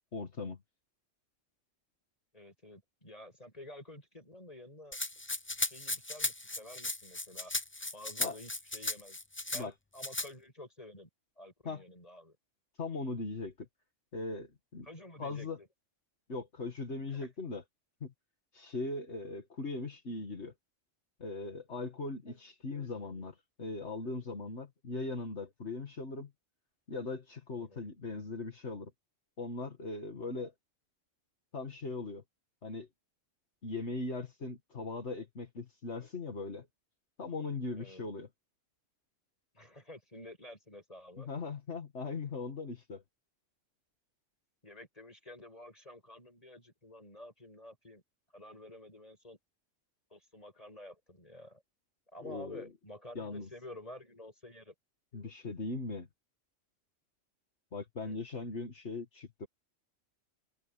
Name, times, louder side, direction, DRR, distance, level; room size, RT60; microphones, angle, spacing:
voice 1, 0.1-0.6 8.2-8.4 9.5-9.7 11.6-11.8 12.8-13.7 14.1-14.9 15.2-15.6 16.3-17.6 18.0-18.1 18.5-20.5 21.2-26.3 26.9-28.9 29.4-30.5 31.5-32.2 32.6-32.9 33.6-36.7 37.2-38.3 41.2-43.0 52.2-52.7 53.1-53.5 55.1-56.1 57.7-59.5, left 3 dB, 60° left, 2.4 m, -39 dB
voice 2, 2.3-5.0 5.5-7.5 7.9-9.2 9.5-11.1 11.4-12.4 14.9-15.7 17.1-17.3 27.6-27.9 37.8-38.0 39.5-41.3 44.6-48.0 48.3-49.4 50.1-51.6 52.1-54.7 58.0-58.2, left 1 dB, 30° left, 7.3 m, -50 dB
Rattle (instrument), 4.9-9.6 10.0-10.3, left 2 dB, 10° left, 0.6 m, -36 dB
omnidirectional pair, 1.3 m